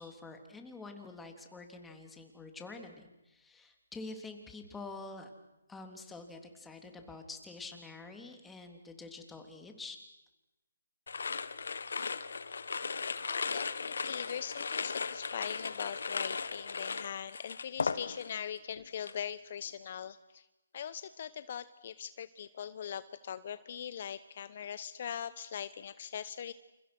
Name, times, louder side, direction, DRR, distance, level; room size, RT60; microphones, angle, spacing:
voice 1, 0.0-5.3 5.7-10.0, left 3 dB, 5° left, 4 dB, 3.4 m, -47 dB
sound 1, 11.1-18.5 18.8-19.2, left 5 dB, 75° left, 1.6 m, -37 dB
voice 2, 13.3-20.5 20.7-26.5, left 8 dB, 50° left, 14 dB, 1.1 m, -41 dB
29.0 x 28.5 x 6.2 m, 0.98 s
hypercardioid pair, 150°, 0 cm